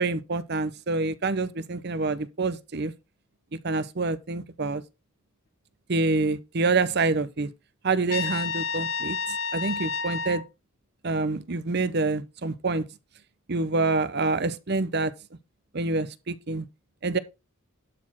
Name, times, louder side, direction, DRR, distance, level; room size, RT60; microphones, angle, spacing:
voice 1, 0.0-2.9 3.5-4.8 5.9-7.5 7.8-10.4 11.0-12.9 13.5-15.1 15.7-16.7 17.0-17.2, right 3 dB, 50° right, 0.8 m, -27 dB
Trumpet, 8.1-10.4, left 5 dB, 70° left, 1.3 m, -30 dB
12.0 x 4.3 x 5.7 m
head